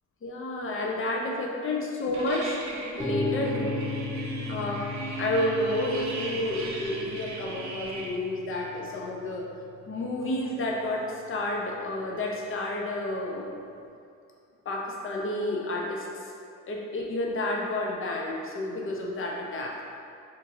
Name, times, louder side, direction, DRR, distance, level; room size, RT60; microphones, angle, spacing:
voice 1, 0.2-2.6 3.0-3.8 4.5-4.9 5.2-9.5 9.9-13.5 14.7-16.3 16.7-19.7, left 1 dB, 30° left, -1 dB, 0.6 m, -30 dB
sound 1, 2.1-8.1, right 4 dB, 45° right, 0.6 m, -37 dB
sound 2, 3.0-10.9, left 2 dB, 10° left, 1.0 m, -37 dB
3.8 x 2.6 x 2.7 m, 2.4 s
hypercardioid pair, 45°, 40 cm